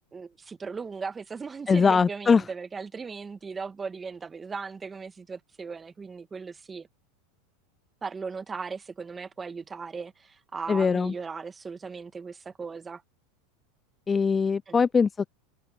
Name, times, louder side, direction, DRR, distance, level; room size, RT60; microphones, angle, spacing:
voice 1, 0.1-6.9 8.0-13.0 14.7-14.8, right 5 dB, 20° right, 1.3 m, -37 dB
voice 2, 1.7-2.4 10.7-11.1 14.1-15.3, left 5 dB, 20° left, 0.3 m, -22 dB
hypercardioid pair, 105°, 0 cm